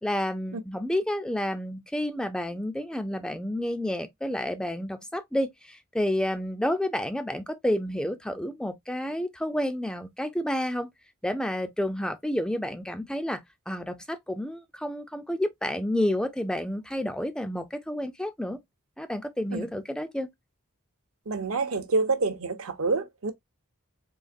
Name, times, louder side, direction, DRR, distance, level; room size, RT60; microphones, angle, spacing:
voice 1, 0.0-10.9 11.2-13.4 13.7-18.6 19.0-20.3, left 1 dB, 5° left, 0.3 m, -30 dB
voice 2, 21.3-23.3, right 3 dB, 70° right, 0.7 m, -27 dB
3.8 x 2.9 x 2.4 m
head